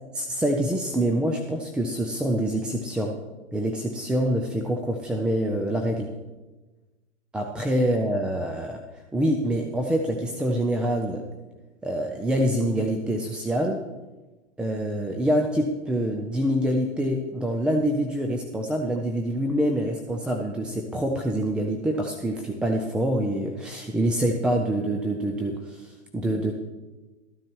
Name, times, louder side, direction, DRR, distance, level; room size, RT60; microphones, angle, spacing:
voice 1, 0.2-3.2 3.5-6.1 7.3-11.2 11.8-13.8 14.6-26.5, right 1 dB, 5° right, 2 dB, 0.3 m, -26 dB
13.0 x 9.7 x 4.5 m, 1.2 s
hypercardioid pair, 115°, 36 cm